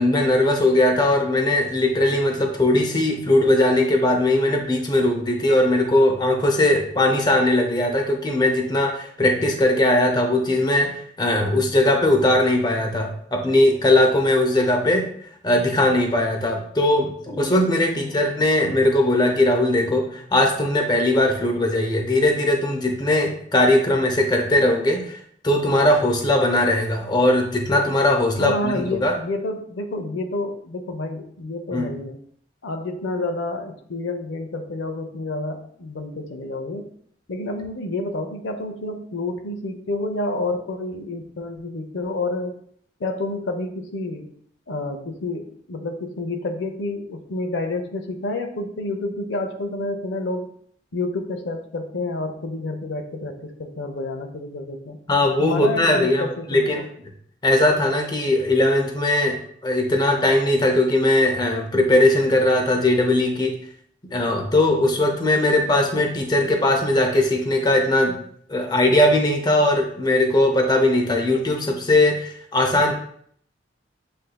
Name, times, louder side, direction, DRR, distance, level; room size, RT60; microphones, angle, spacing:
voice 1, 0.0-15.1 15.4-25.2 25.4-29.2 31.7-31.9 55.1-56.8 57.4-63.5 64.1-68.2 68.5-72.9, left 1 dB, 25° left, 2 dB, 0.6 m, -19 dB
voice 2, 17.9-18.2 28.4-32.2 32.6-36.9 37.3-42.6 43.0-44.3 44.7-50.5 50.9-55.0 55.4-56.8, left 2 dB, 85° left, 5 dB, 0.6 m, -29 dB
7.6 x 2.6 x 2.2 m, 0.63 s
head